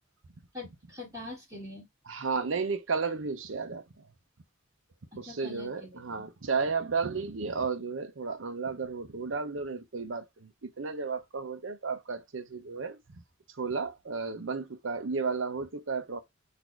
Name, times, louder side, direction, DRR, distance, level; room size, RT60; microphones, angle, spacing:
voice 1, 0.5-1.8 5.1-6.0, left 2 dB, 20° right, 1.9 m, -43 dB
voice 2, 2.1-4.1 5.1-13.0 13.6-16.2, right 4 dB, 65° right, 0.7 m, -33 dB
4.1 x 2.7 x 4.5 m
head